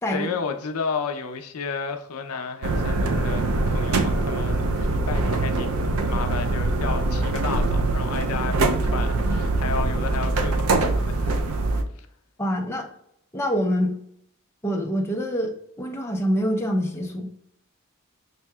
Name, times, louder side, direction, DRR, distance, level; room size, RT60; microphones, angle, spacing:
voice 1, 0.1-11.3 12.0-12.1, left 5 dB, 80° left, 0.5 m, -32 dB
sound 1, 2.6-11.8, right 2 dB, 70° right, 0.4 m, -23 dB
voice 2, 12.4-12.9 13.3-14.0 14.6-17.3, equal, 10° left, 0.5 m, -25 dB
5.6 x 2.7 x 2.2 m
head